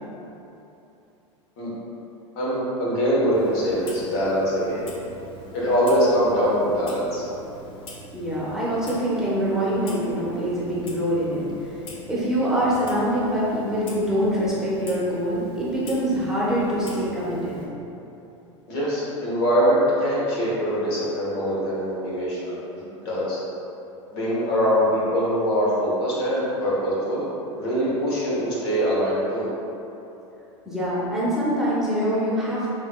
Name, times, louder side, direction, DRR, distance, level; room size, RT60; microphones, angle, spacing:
voice 1, 2.3-4.9 5.5-7.2 18.7-22.6 23.0-23.4 24.1-27.3 27.6-29.5, equal, 55° left, -7 dB, 1.3 m, -23 dB
Clock, 3.3-17.7, equal, 35° left, 0.8 m, -43 dB
voice 2, 8.1-11.8 12.1-17.6 30.6-32.7, equal, 5° right, -9 dB, 1.1 m, -24 dB
5.4 x 3.2 x 2.3 m, 2.9 s
figure-of-eight pair, 85°, 16 cm